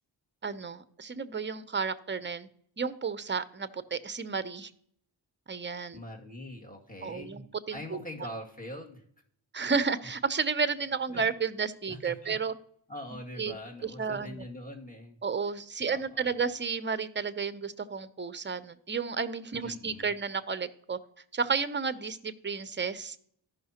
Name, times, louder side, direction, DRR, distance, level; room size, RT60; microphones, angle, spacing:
voice 1, 0.4-2.5 2.8-4.7 5.5-6.0 7.0-8.0 9.5-12.5 13.4-13.5 13.8-14.4 15.2-21.0 21.3-23.2, right 5 dB, 25° right, 14 dB, 0.7 m, -32 dB
voice 2, 5.9-7.4 7.7-9.0 11.1-11.2 11.9-12.3 12.9-15.2 15.9-16.4 19.6-20.1, left 1 dB, 15° left, -1 dB, 2.4 m, -43 dB
14.0 x 5.7 x 2.9 m, 0.63 s
cardioid pair, 40°, 48 cm